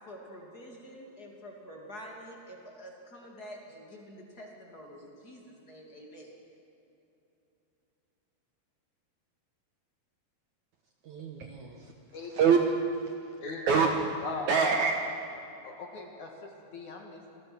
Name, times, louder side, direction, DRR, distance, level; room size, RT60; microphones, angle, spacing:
voice 1, 0.0-6.3, equal, 25° left, 0 dB, 2.8 m, -47 dB
voice 2, 11.0-11.9 12.3-12.6 13.0-13.1 13.5-13.9 14.5-14.9, right 6 dB, 65° right, 2 dB, 2.2 m, -25 dB
voice 3, 14.2-14.6 15.6-17.4, left 3 dB, 55° left, 2 dB, 2.8 m, -40 dB
26.5 x 19.5 x 6.2 m, 3.0 s
omnidirectional pair, 4.6 m